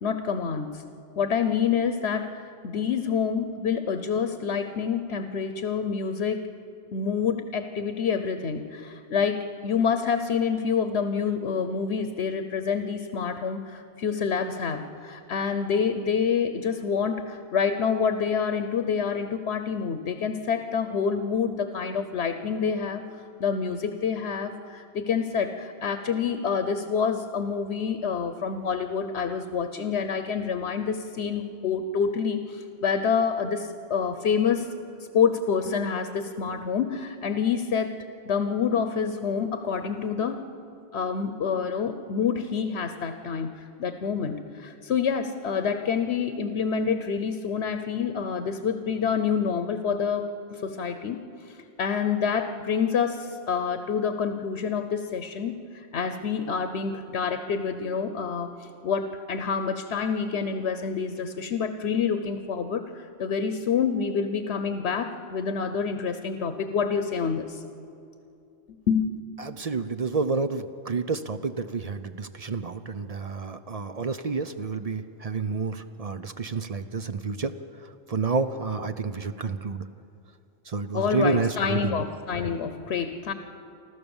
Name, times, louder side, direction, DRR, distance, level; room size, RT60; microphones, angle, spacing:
voice 1, 0.0-0.9 1.2-6.5 6.9-23.0 23.4-34.7 35.1-37.9 38.3-40.4 40.9-67.6 68.9-69.1 80.9-83.3, left 6 dB, 85° left, 9 dB, 1.1 m, -27 dB
voice 2, 69.4-77.5 78.1-79.8 80.7-82.0, right 4 dB, 45° right, 10 dB, 0.6 m, -29 dB
29.0 x 13.0 x 7.1 m, 2.6 s
omnidirectional pair, 1.1 m